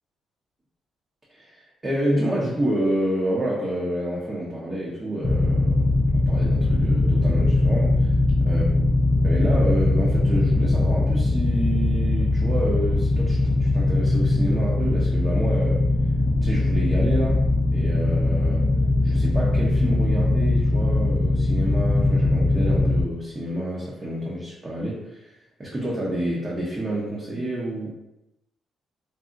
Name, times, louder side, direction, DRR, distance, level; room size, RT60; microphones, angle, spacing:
voice 1, 1.3-8.1 8.4-8.6 9.2-15.8 16.4-18.7 19.0-25.3 25.6-27.9, right 1 dB, 25° right, -6 dB, 0.7 m, -29 dB
sound 1, 5.2-23.0, left 2 dB, 30° left, 0.4 m, -21 dB
3.7 x 2.0 x 2.5 m, 0.90 s
cardioid pair, 90°, 0 cm